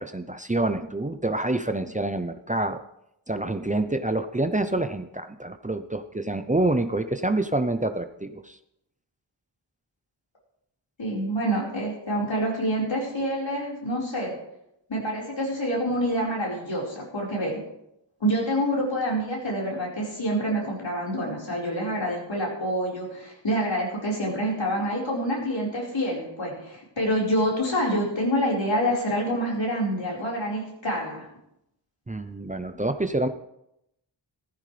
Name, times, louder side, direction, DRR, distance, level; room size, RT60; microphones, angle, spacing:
voice 1, 0.0-2.8 3.3-8.6 32.1-33.3, right 2 dB, 15° right, 8 dB, 0.7 m, -27 dB
voice 2, 11.0-14.3 14.9-17.6 18.2-31.3, equal, 80° left, -4 dB, 4.8 m, -27 dB
15.0 x 14.5 x 3.4 m, 0.82 s
wide cardioid pair, 75°, 44 cm